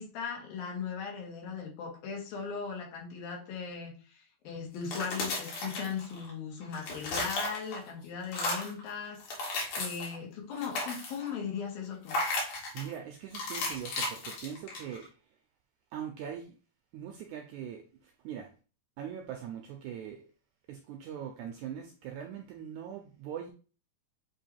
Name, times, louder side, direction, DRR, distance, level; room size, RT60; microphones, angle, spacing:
voice 1, 0.0-12.1, left 6 dB, 80° left, 3.4 m, -38 dB
sound 1, 4.7-6.3 6.6-7.9 8.2-8.8 9.2-10.2 10.5-11.3 12.1-12.9 13.3-15.0, left 2 dB, 60° left, 3.1 m, -35 dB
voice 2, 12.7-15.4 15.9-16.6 16.9-18.5 19.0-20.3 20.7-23.5, right 9 dB, 85° right, 1.7 m, -41 dB
7.9 x 3.0 x 4.3 m
omnidirectional pair, 4.1 m